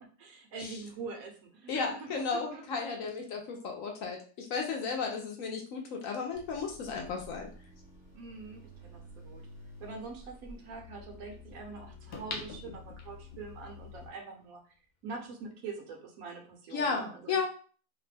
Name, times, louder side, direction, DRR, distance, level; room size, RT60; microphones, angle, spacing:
voice 1, 0.0-2.9 8.1-9.5 9.8-14.6 15.0-17.5, right 4 dB, 70° right, 2 dB, 1.0 m, -44 dB
voice 2, 1.7-7.5 16.7-17.5, left 5 dB, 70° left, 2 dB, 0.9 m, -34 dB
sound 1, 6.3-14.1, left 2 dB, 30° left, 1.0 m, -51 dB
sound 2, 12.1-13.4 13.9-14.0, left 3 dB, 85° left, 0.5 m, -42 dB
2.8 x 2.1 x 3.2 m, 0.41 s
omnidirectional pair, 1.6 m